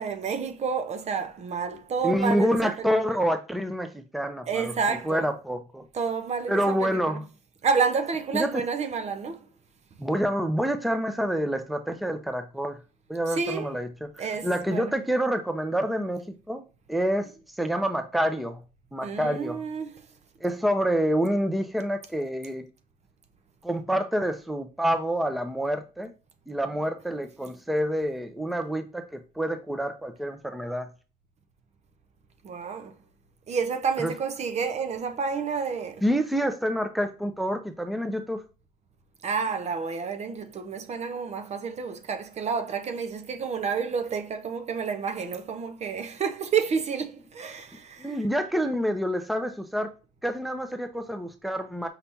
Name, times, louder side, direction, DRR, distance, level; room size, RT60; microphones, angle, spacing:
voice 1, 0.0-2.9 4.5-5.3 5.9-7.2 7.6-9.5 13.3-13.7 14.2-14.9 19.0-19.9 32.4-32.9 33.5-36.0 39.2-48.2, right 5 dB, 40° right, 0.7 m, -29 dB
voice 2, 2.0-5.8 6.5-7.3 8.3-8.6 10.0-12.8 13.1-16.6 16.9-17.3 17.6-18.6 18.9-19.6 20.4-22.7 23.6-26.1 26.5-30.9 34.0-34.1 36.0-38.4 48.0-49.9 50.2-51.9, equal, ahead, 0.7 m, -27 dB
5.7 x 3.3 x 2.8 m
cardioid pair, 110°, 17 cm